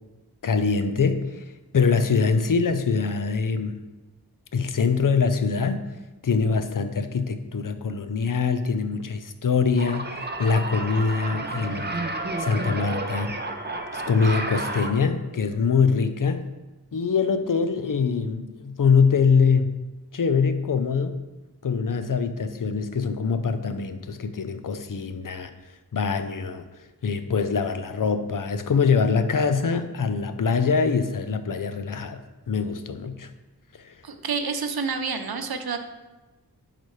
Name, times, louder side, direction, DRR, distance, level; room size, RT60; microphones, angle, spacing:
voice 1, 0.4-3.8 4.5-5.8 6.2-12.0 12.4-13.4 13.9-16.5 16.9-19.7 20.1-21.2 21.6-25.5 25.9-26.6 27.0-32.2 32.5-33.3 33.8-33.9, left 5 dB, 55° left, 9 dB, 0.6 m, -24 dB
sound 1, 9.8-14.9, right 2 dB, 25° right, 0.7 m, -31 dB
voice 2, 34.0-35.8, right 5 dB, 70° right, 7 dB, 0.7 m, -28 dB
10.5 x 4.1 x 3.2 m, 1.1 s
wide cardioid pair, 50°, 38 cm